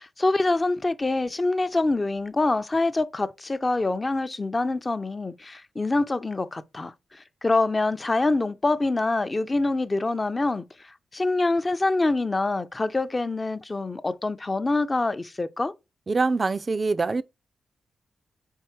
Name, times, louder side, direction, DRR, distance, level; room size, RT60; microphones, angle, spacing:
voice 1, 0.0-10.6 11.1-15.7, left 2 dB, 25° left, 0.6 m, -25 dB
voice 2, 16.1-17.2, right 3 dB, 35° right, 0.4 m, -24 dB
4.6 x 4.6 x 4.5 m
cardioid pair, 95°, 0 cm